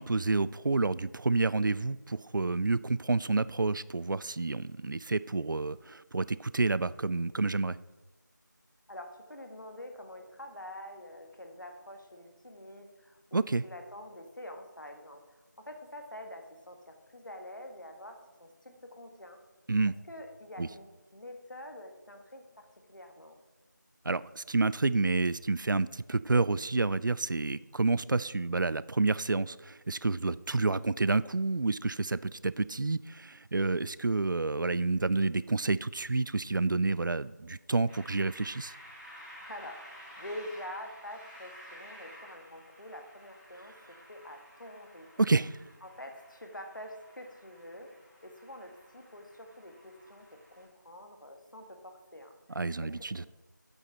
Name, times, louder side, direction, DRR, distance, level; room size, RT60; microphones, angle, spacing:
voice 1, 0.0-7.8 13.3-13.6 19.7-19.9 20.6-20.7 24.0-38.7 45.2-45.6 52.5-53.2, right 3 dB, 80° right, 18 dB, 0.4 m, -29 dB
voice 2, 8.9-19.4 20.1-23.4 39.4-45.1 45.8-53.3, left 1 dB, 80° left, 4 dB, 1.5 m, -46 dB
sound 1, 37.9-50.6, equal, 10° left, 2.7 m, -53 dB
8.2 x 5.8 x 4.2 m, 1.2 s
figure-of-eight pair, 180°, 10 cm